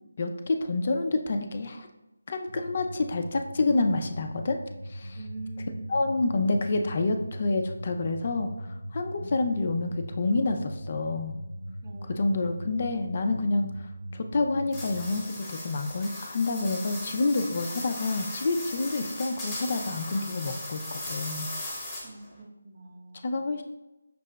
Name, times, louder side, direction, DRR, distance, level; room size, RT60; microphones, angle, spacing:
voice 1, 0.2-1.9 2.3-4.6 4.9-5.2 5.9-11.4 12.1-21.5 23.2-23.6, left 3 dB, 40° left, 6 dB, 0.3 m, -28 dB
sound 1, 2.5-15.1, equal, 75° right, 0.3 m, -40 dB
voice 2, 5.2-6.0 11.8-13.0 22.0-23.5, right 2 dB, 40° right, 1 dB, 0.6 m, -44 dB
sound 2, 14.7-22.3, left 1 dB, 10° left, 0.9 m, -38 dB
5.9 x 2.7 x 2.2 m, 1.0 s
figure-of-eight pair, 155°, 0 cm